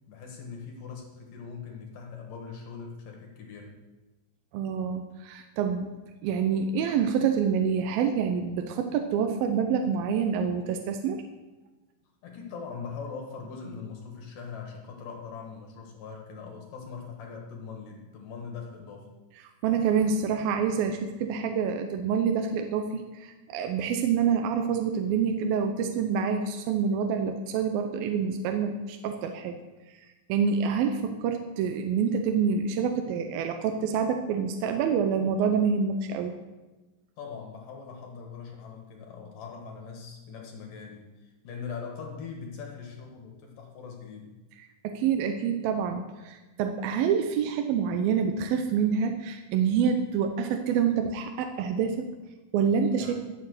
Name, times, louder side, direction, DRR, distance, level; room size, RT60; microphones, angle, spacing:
voice 1, 0.1-3.8 12.2-19.1 37.2-44.3 53.0-53.1, left 5 dB, 70° left, 1 dB, 3.2 m, -41 dB
voice 2, 4.5-5.9 6.2-11.2 19.6-29.6 29.9-30.0 30.3-36.4 44.8-52.1 52.5-53.2, right 6 dB, 85° right, 6 dB, 2.6 m, -27 dB
12.5 x 6.9 x 8.1 m, 1.1 s
omnidirectional pair, 4.1 m